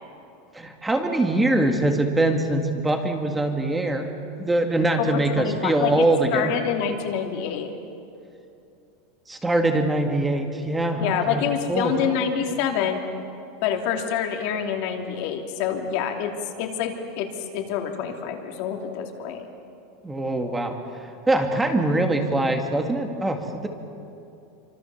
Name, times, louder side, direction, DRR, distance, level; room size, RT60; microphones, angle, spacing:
voice 1, 0.5-6.6 9.3-11.4 11.7-11.9 20.0-20.8 21.3-23.7, right 2 dB, 5° right, 4 dB, 1.9 m, -23 dB
voice 2, 5.0-6.1 6.3-7.7 11.0-13.0 13.6-16.3 16.6-19.5, left 8 dB, 50° left, 3 dB, 3.0 m, -26 dB
28.0 x 25.5 x 7.1 m, 2.7 s
supercardioid pair, 170°, 0 cm